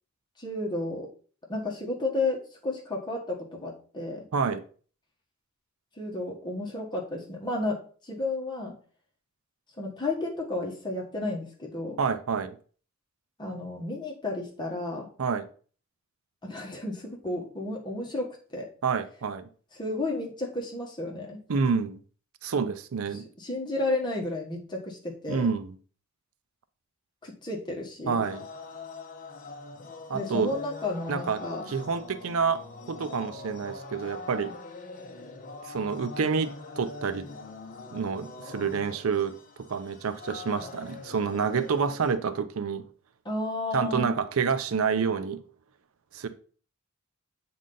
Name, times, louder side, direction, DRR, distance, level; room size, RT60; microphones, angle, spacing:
voice 1, 0.4-1.1 1.5-4.2 6.0-8.7 9.8-12.0 13.4-15.1 16.4-18.7 19.7-21.4 23.4-25.5 27.2-28.3 30.1-31.7 43.2-44.1, left 2 dB, 20° left, 1.3 m, -32 dB
voice 2, 4.3-4.6 12.0-12.6 15.2-15.5 18.8-19.5 21.5-22.0 22.4-23.3 25.3-25.8 28.1-28.4 30.1-30.5 31.1-31.4 31.7-32.6 32.9-34.6 35.6-37.3 37.9-39.3 39.7-42.9 43.7-45.4 46.1-46.3, right 5 dB, 75° right, 0.5 m, -28 dB
sound 1, 28.2-42.1, left 3 dB, 40° left, 0.8 m, -43 dB
7.5 x 3.9 x 3.9 m
head